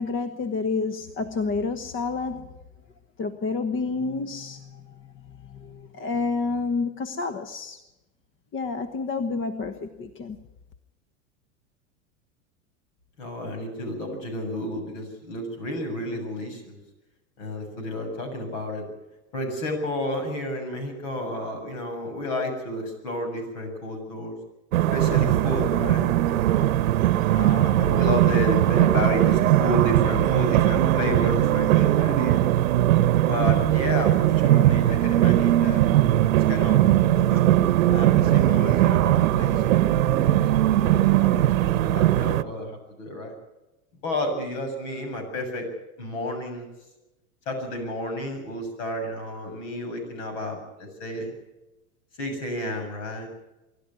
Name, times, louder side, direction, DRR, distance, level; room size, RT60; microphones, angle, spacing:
voice 1, 0.0-2.5 3.2-7.8 8.5-10.4, left 4 dB, 30° left, 10 dB, 1.3 m, -29 dB
voice 2, 13.2-16.8 17.4-18.9 19.3-24.4 24.9-26.7 27.3-32.5 33.2-35.8 36.5-36.8 37.1-37.4 37.9-43.3 44.0-45.7 46.0-46.7 47.5-51.3 52.2-53.3, left 1 dB, 65° left, 5 dB, 7.5 m, -31 dB
sound 1, 24.7-42.4, right 13 dB, 75° right, 1.0 m, -20 dB
25.0 x 12.0 x 9.7 m, 0.99 s
hypercardioid pair, 95°, 41 cm